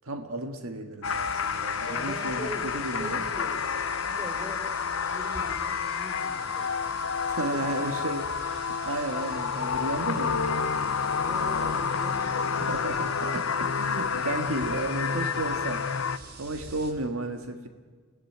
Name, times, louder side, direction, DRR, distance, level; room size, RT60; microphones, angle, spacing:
voice 1, 0.0-3.2 7.3-10.4 12.6-17.7, right 2 dB, 70° right, 6 dB, 1.7 m, -33 dB
sound 1, 1.0-16.2, left 6 dB, 65° left, 0.7 m, -29 dB
sound 2, 1.0-16.9, right 3 dB, 50° right, 3.6 m, -46 dB
voice 2, 1.8-4.6 5.1-7.1 7.4-7.8 11.2-12.5, right 1 dB, 15° right, 2 dB, 4.9 m, -41 dB
29.5 x 18.0 x 9.3 m, 1.5 s
head